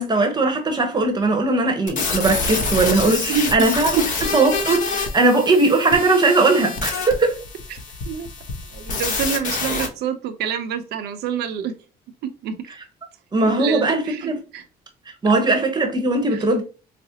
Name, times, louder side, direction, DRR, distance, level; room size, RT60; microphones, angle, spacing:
voice 1, 0.0-4.0 4.3-7.4 13.3-14.4 15.2-16.6, right 2 dB, 25° right, 0.9 m, -19 dB
sound 1, 1.9-9.9, left 4 dB, 50° left, 1.1 m, -27 dB
voice 2, 8.7-11.7 12.2-12.6 13.6-14.6 16.3-16.4, right 7 dB, 75° right, 0.7 m, -26 dB
4.9 x 2.0 x 2.8 m
cardioid pair, 110°, 17 cm